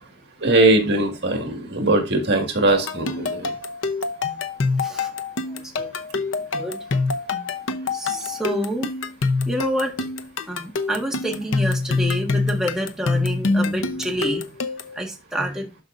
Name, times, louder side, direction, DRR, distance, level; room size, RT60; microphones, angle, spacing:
voice 1, 0.4-3.5, right 2 dB, 60° right, 1.9 m, -20 dB
sound 1, 2.7-15.0, left 3 dB, 90° left, 0.8 m, -25 dB
voice 2, 4.8-5.1 5.5-5.9 6.5-6.8 7.9-8.9 9.5-9.9 10.5-14.5 14.9-15.7, equal, 5° right, 1.7 m, -28 dB
12.5 x 5.1 x 2.6 m
head